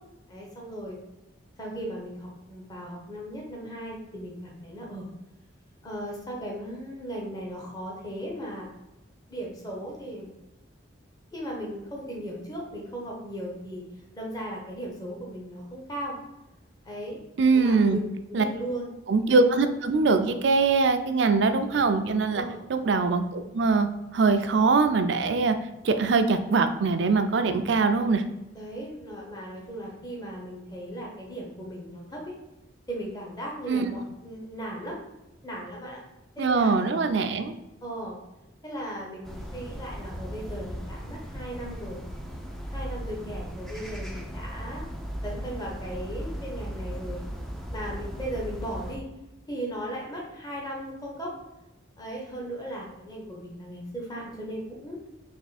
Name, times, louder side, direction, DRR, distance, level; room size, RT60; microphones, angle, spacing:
voice 1, 0.3-1.0 1.6-5.1 5.8-8.7 9.3-10.3 11.3-13.8 14.1-16.2 16.8-17.2 17.5-18.0 18.3-18.9 22.3-22.6 28.5-32.3 32.9-35.0 35.4-36.0 36.4-36.9 37.8-38.2 38.6-42.0 42.7-44.8 45.2-47.2 47.7-49.0 49.5-51.3 52.0-55.0, right 1 dB, 20° left, -3 dB, 0.8 m, -37 dB
voice 2, 17.4-18.0 18.3-18.4 19.1-22.4 22.7-23.9 24.1-25.6 25.8-28.2 33.7-33.9 36.4-37.5, right 4 dB, 65° right, 8 dB, 0.4 m, -22 dB
sound 1, 39.2-49.0, equal, ahead, 0.4 m, -37 dB
3.5 x 3.1 x 4.1 m, 0.98 s
head